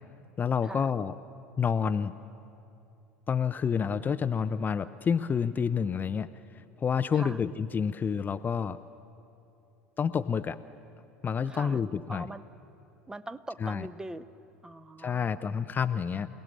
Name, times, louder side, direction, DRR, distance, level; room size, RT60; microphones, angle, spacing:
voice 1, 0.4-1.1 1.6-2.1 3.3-6.3 6.8-8.8 10.0-10.6 11.2-12.3 13.6-13.9 15.0-16.3, left 6 dB, 25° left, 11 dB, 0.7 m, -28 dB
voice 2, 11.5-11.8 12.1-12.4 13.1-14.3 14.6-15.4, right 1 dB, 10° right, 13 dB, 1.0 m, -41 dB
28.0 x 18.0 x 8.8 m, 2.8 s
figure-of-eight pair, 75°, 7 cm